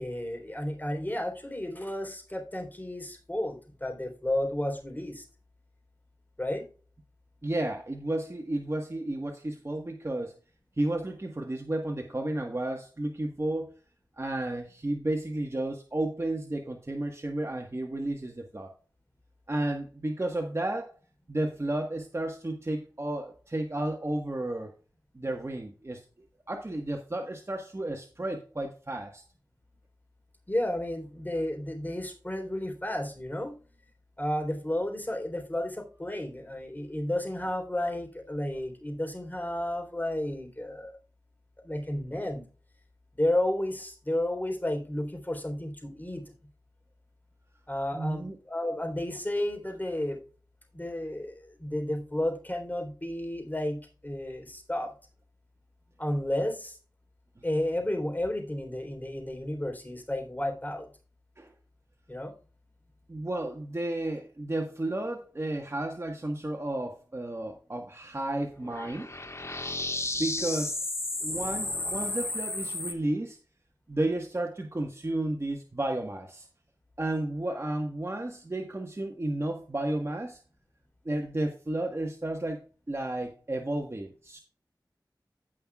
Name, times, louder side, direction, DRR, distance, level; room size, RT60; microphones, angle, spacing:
voice 1, 0.0-5.2 6.4-6.6 30.5-33.8 34.2-41.0 41.6-42.4 43.1-46.2 47.7-50.2 50.7-54.9 56.0-56.8 57.4-60.9 62.1-62.3, left 1 dB, 25° left, 3 dB, 3.6 m, -32 dB
voice 2, 7.4-10.3 10.8-13.7 14.2-18.7 19.5-20.9 21.3-24.7 25.1-26.0 26.5-29.2 47.9-48.4 61.4-61.5 63.1-69.1 70.2-70.7 71.2-73.4 73.9-76.5 77.0-80.4 81.0-82.6 82.9-84.4, right 1 dB, 35° right, 2 dB, 1.4 m, -32 dB
sound 1, 68.6-72.9, left 2 dB, 40° left, 1.6 m, -33 dB
16.5 x 5.7 x 2.4 m, 0.38 s
wide cardioid pair, 50°, 7 cm